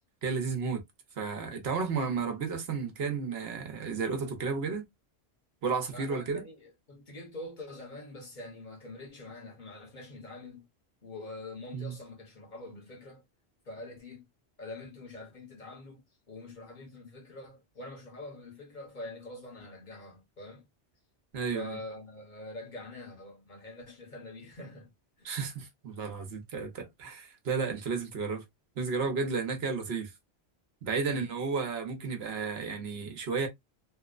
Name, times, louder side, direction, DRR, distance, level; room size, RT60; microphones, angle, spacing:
voice 1, 0.2-0.8 1.2-4.8 5.6-6.4 11.7-11.9 21.3-21.8 25.2-28.4 28.8-30.1 30.8-33.5, right 5 dB, 70° right, 0.9 m, -32 dB
voice 2, 5.9-10.7 11.0-13.2 13.6-14.2 14.6-20.7 21.5-24.9 25.2-25.3 31.0-31.3, left 2 dB, 45° left, 1.1 m, -45 dB
2.9 x 2.0 x 2.3 m
omnidirectional pair, 1.1 m